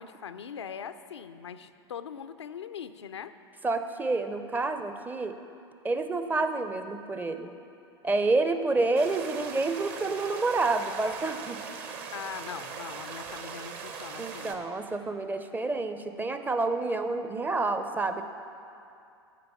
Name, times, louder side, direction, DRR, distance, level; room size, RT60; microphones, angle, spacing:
voice 1, 0.0-3.3 12.1-14.6, left 7 dB, 80° left, 10 dB, 0.4 m, -41 dB
voice 2, 3.6-5.4 5.8-7.5 8.0-11.6 14.2-18.2, right 3 dB, 10° right, 8 dB, 0.5 m, -28 dB
sound 1, 9.0-14.6, right 6 dB, 45° right, 0.9 m, -40 dB
13.5 x 5.2 x 5.8 m, 2.6 s
figure-of-eight pair, 90°, 14 cm